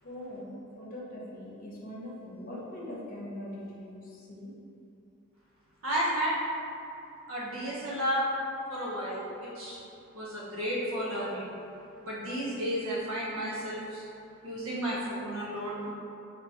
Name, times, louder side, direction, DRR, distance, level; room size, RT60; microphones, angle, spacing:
voice 1, 0.0-4.5, left 1 dB, 45° left, -5 dB, 0.8 m, -42 dB
voice 2, 5.8-6.3 7.3-8.2 8.7-9.8 10.1-11.5 12.0-14.0 14.4-15.9, equal, 75° right, -7 dB, 0.8 m, -32 dB
4.3 x 2.9 x 2.8 m, 2.7 s
head